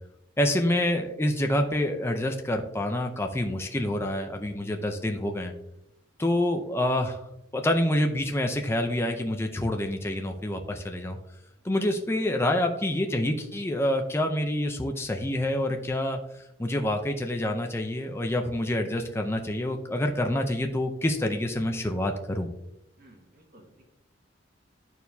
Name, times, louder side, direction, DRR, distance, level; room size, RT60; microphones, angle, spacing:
voice 1, 0.4-5.5 6.2-7.3 7.5-11.2 11.6-16.2 16.6-22.5, left 1 dB, 15° left, 4 dB, 0.5 m, -27 dB
voice 2, 23.0-23.9, right 1 dB, 50° right, 1 dB, 1.6 m, -55 dB
11.0 x 4.5 x 2.7 m, 0.83 s
head